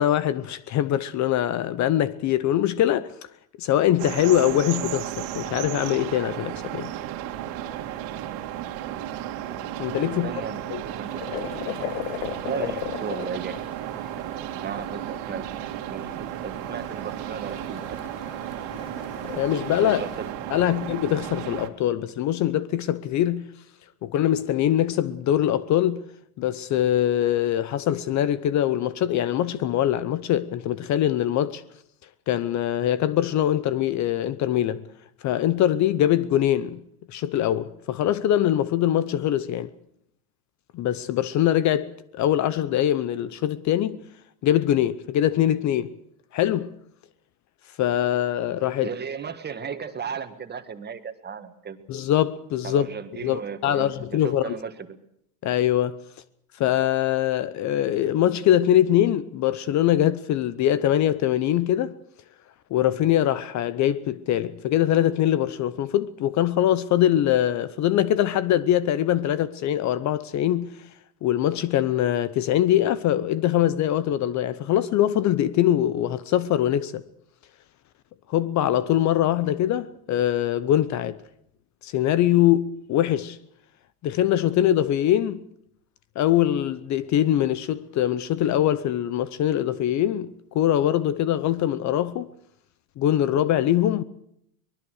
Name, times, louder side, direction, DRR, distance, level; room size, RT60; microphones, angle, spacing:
voice 1, 0.0-3.1 3.6-6.9 9.8-10.3 10.7-10.8 19.4-20.0 20.5-23.4 24.0-26.0 26.4-31.6 32.3-34.9 35.2-36.8 37.1-39.7 40.7-44.0 44.4-46.0 46.3-46.7 47.8-48.9 51.9-52.9 53.2-54.5 55.4-56.0 56.6-61.9 62.7-70.7 71.2-77.0 78.3-81.2 81.8-83.4 84.0-85.5 86.2-92.3 93.0-94.0, left 11 dB, 40° left, 0.8 m, -23 dB
sound 1, 4.0-21.7, right 12 dB, 60° right, 2.4 m, -34 dB
voice 2, 10.1-11.8 12.4-13.6 14.0-15.4 15.9-18.3 19.8-20.8 48.8-51.8 52.6-55.0, right 6 dB, 20° right, 1.8 m, -36 dB
sound 2, 10.5-20.3, left 14 dB, 85° left, 1.3 m, -38 dB
23.5 x 20.5 x 6.5 m
supercardioid pair, 125°, 46 cm